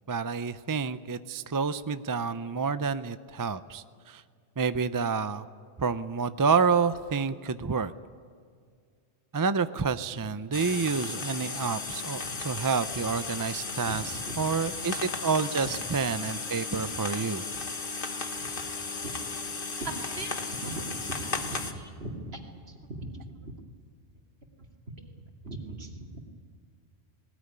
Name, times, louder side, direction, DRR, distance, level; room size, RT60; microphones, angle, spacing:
voice 1, 0.1-4.2 4.6-5.5 5.8-7.9 9.3-14.0 14.4-17.4, right 5 dB, 30° right, 12 dB, 0.4 m, -29 dB
sound 1, 10.5-21.7, left 4 dB, 50° left, 1.5 m, -35 dB
voice 2, 13.8-14.4 15.6-15.8 16.7-16.8 17.5-17.6 19.0-19.1 19.8-22.4 22.7-23.5 24.9-25.1 25.4-26.2, right 2 dB, 60° right, 1 dB, 2.7 m, -40 dB
19.5 x 19.5 x 9.7 m, 2.1 s
omnidirectional pair, 1.1 m